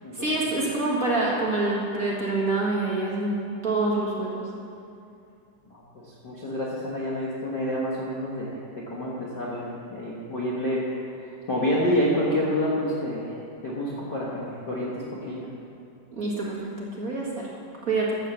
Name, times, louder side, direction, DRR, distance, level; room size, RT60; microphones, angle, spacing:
voice 1, 0.1-4.4 16.1-17.5 17.8-18.1, right 2 dB, 30° right, -5 dB, 1.7 m, -26 dB
voice 2, 5.7-8.5 8.9-13.4 13.6-14.9 15.2-15.5, equal, 45° left, -6 dB, 1.5 m, -28 dB
13.0 x 7.9 x 7.2 m, 2.6 s
omnidirectional pair, 3.9 m